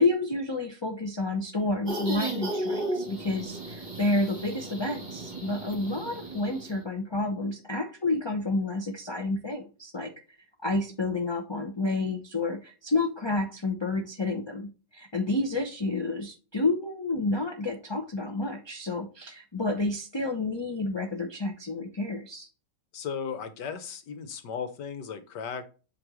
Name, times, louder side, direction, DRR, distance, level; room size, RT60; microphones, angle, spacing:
voice 1, 0.0-10.1 10.6-22.5, left 2 dB, 25° left, 3 dB, 0.5 m, -30 dB
sound 1, 1.9-6.8, right 1 dB, 25° right, 2.0 m, -34 dB
voice 2, 22.9-25.7, left 6 dB, 75° left, 10 dB, 1.7 m, -36 dB
7.8 x 3.5 x 4.9 m, 0.33 s
omnidirectional pair, 1.9 m